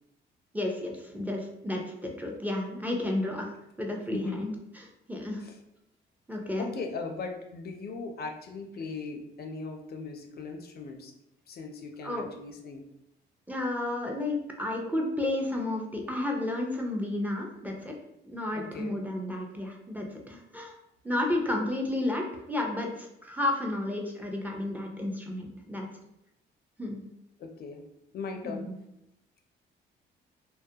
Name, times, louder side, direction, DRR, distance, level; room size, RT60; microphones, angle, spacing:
voice 1, 0.5-5.5 6.3-6.7 12.0-12.3 13.5-17.9 18.2-20.7 21.0-25.9 26.8-27.0 28.4-28.7, left 1 dB, 10° right, 0 dB, 0.4 m, -32 dB
voice 2, 6.6-11.1 11.5-12.9 18.5-19.0 27.4-27.8 28.1-28.7, left 4 dB, 55° left, 3 dB, 0.4 m, -39 dB
2.3 x 2.1 x 2.7 m, 0.84 s
cardioid pair, 90°, 20 cm